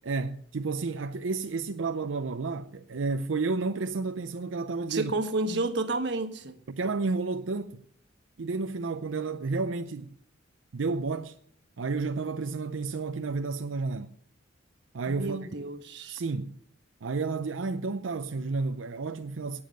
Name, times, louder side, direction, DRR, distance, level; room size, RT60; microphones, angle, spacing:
voice 1, 0.0-5.1 6.7-7.8 8.4-10.1 10.7-11.4 11.8-14.1 14.9-15.7 16.1-16.6 17.0-19.6, right 4 dB, 90° right, 0.6 m, -31 dB
voice 2, 4.9-6.6 15.1-16.2, right 2 dB, 60° right, 1.5 m, -31 dB
18.5 x 7.0 x 6.6 m
head